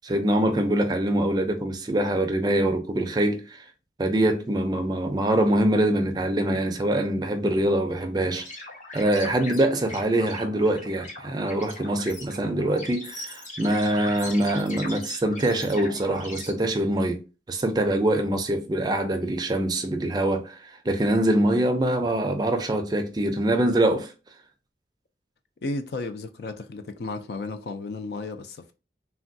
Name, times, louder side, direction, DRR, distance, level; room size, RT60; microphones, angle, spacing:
voice 1, 0.1-3.6 4.0-8.5 8.9-17.2 17.5-24.1, right 1 dB, 25° right, 0.4 m, -24 dB
sound 1, 8.3-16.5, left 2 dB, 45° left, 0.9 m, -40 dB
voice 2, 25.6-28.7, left 3 dB, 60° left, 0.4 m, -33 dB
3.3 x 2.2 x 2.6 m
head